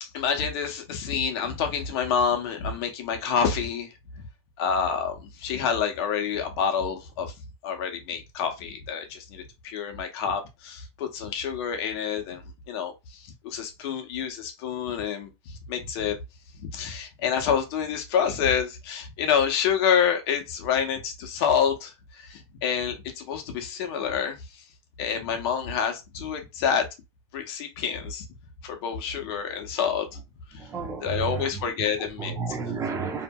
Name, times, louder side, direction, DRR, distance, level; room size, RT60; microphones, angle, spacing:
voice 1, 0.0-3.9 4.6-7.3 7.6-12.4 12.7-16.2 16.7-24.6 25.0-26.9 27.3-28.2 28.6-30.1 30.5-30.6 31.0-32.4, left 7 dB, 55° left, 0.8 m, -28 dB
voice 2, 30.5-31.5 32.0-33.2, right 5 dB, 20° right, 0.6 m, -32 dB
2.8 x 2.5 x 2.2 m
hypercardioid pair, 125°, 15 cm